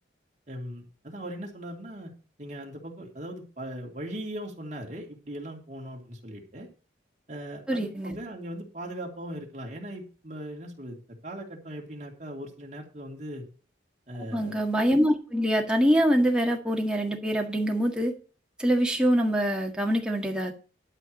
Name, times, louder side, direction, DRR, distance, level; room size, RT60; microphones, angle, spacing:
voice 1, 0.5-2.1 2.4-6.7 7.3-11.0 11.2-13.4 14.1-14.6, right 1 dB, 40° right, 0 dB, 2.9 m, -39 dB
voice 2, 7.7-8.2 14.3-18.1 18.6-20.5, equal, 5° right, 1 dB, 1.7 m, -24 dB
12.0 x 4.8 x 7.7 m, 0.36 s
head